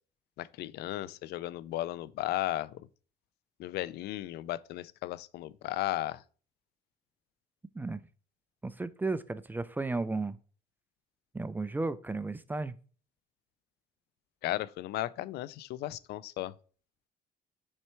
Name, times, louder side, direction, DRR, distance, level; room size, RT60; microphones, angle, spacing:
voice 1, 0.4-2.9 3.6-6.2 14.4-16.6, left 15 dB, 75° left, 0.4 m, -35 dB
voice 2, 8.6-10.4 11.3-12.8, right 3 dB, 10° right, 0.4 m, -34 dB
6.4 x 4.3 x 4.5 m
cardioid pair, 110°, 17 cm